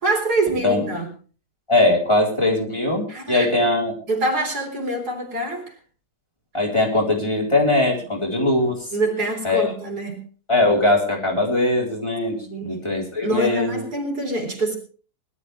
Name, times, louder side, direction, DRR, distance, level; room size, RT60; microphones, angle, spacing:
voice 1, 0.0-1.1 3.1-3.5 4.1-5.7 8.9-10.2 12.4-12.8 13.2-14.8, right 2 dB, 80° right, 2 dB, 4.5 m, -25 dB
voice 2, 1.7-4.0 6.5-8.9 9.4-9.7 10.5-13.8, left 2 dB, 15° left, -2 dB, 4.1 m, -20 dB
21.0 x 12.5 x 3.4 m, 0.39 s
omnidirectional pair, 1.7 m